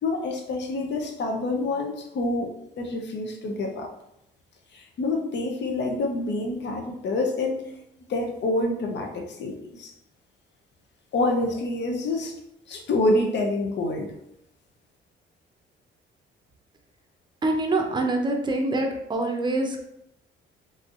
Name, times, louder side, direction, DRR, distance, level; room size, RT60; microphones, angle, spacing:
voice 1, 0.0-3.9 4.7-7.7 8.1-9.9 11.1-12.3 12.7-14.1, left 2 dB, 60° left, 2 dB, 0.7 m, -27 dB
voice 2, 17.4-19.8, right 2 dB, 20° right, 3 dB, 0.6 m, -25 dB
3.2 x 2.6 x 2.5 m, 0.81 s
cardioid pair, 85°, 21 cm